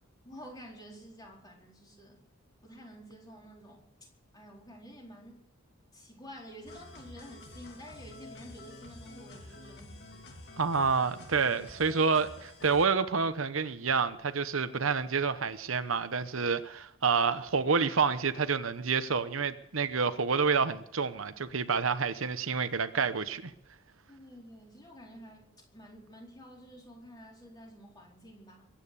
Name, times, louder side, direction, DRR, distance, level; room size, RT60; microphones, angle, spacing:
voice 1, 0.2-2.2 2.6-3.9 4.3-5.4 5.9-10.3 24.1-28.6, equal, 20° left, 4.2 m, -50 dB
sound 1, 6.7-12.9, left 2 dB, 55° left, 2.6 m, -49 dB
voice 2, 10.6-23.5, right 5 dB, 70° right, 0.9 m, -28 dB
22.5 x 9.1 x 7.0 m
head